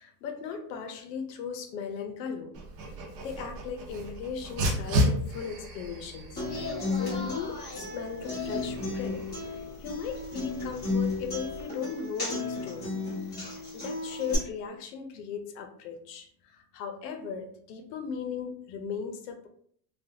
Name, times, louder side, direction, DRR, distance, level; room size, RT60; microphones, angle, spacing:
voice 1, 0.0-2.5 3.2-6.4 7.0-9.2 9.5-13.0 13.7-19.5, left 6 dB, 85° left, 5 dB, 0.7 m, -37 dB
Dog, 2.5-11.6, equal, 60° right, 0.8 m, -34 dB
Human voice / Acoustic guitar, 6.4-14.3, left 3 dB, 20° left, 1.0 m, -34 dB
3.3 x 2.2 x 2.7 m, 0.62 s
supercardioid pair, 175°, 48 cm